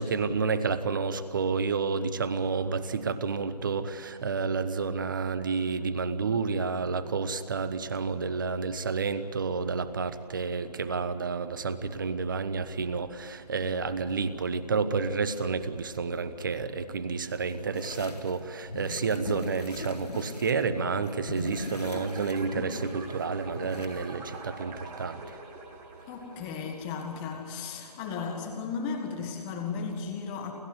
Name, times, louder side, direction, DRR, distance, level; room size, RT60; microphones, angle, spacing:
voice 1, 0.0-25.4, right 4 dB, 30° right, 12 dB, 1.2 m, -30 dB
sound 1, 17.7-18.3 18.7-20.5 20.8-23.9, left 2 dB, 70° left, 3.8 m, -39 dB
sound 2, 21.5-27.2, right 3 dB, 10° right, 1.8 m, -45 dB
voice 2, 26.1-30.5, left 5 dB, 10° left, 3 dB, 1.7 m, -35 dB
29.0 x 15.0 x 9.6 m, 2.5 s
figure-of-eight pair, 160°, 21 cm